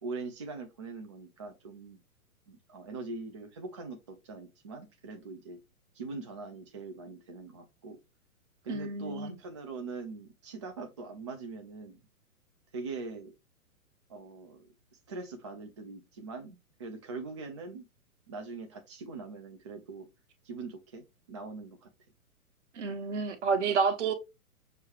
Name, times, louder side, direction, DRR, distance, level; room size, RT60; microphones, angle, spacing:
voice 1, 0.0-2.0 2.5-5.6 5.9-8.0 8.6-12.0 12.7-13.4 14.1-14.7 15.1-17.9 18.3-20.1 20.4-21.9, right 3 dB, 20° right, 0.4 m, -42 dB
voice 2, 8.7-9.3 22.7-24.1, right 5 dB, 50° right, 1.2 m, -29 dB
6.4 x 2.2 x 3.1 m
figure-of-eight pair, 120°, 44 cm